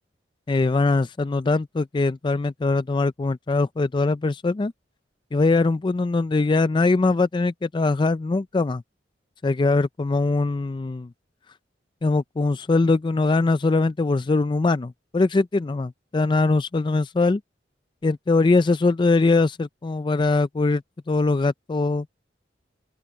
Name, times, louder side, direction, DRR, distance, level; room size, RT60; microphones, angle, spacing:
voice 1, 0.5-4.7 5.3-8.8 9.4-11.1 12.0-17.4 18.0-20.8 21.1-22.1, left 3 dB, 25° left, 0.4 m, -22 dB
open air
head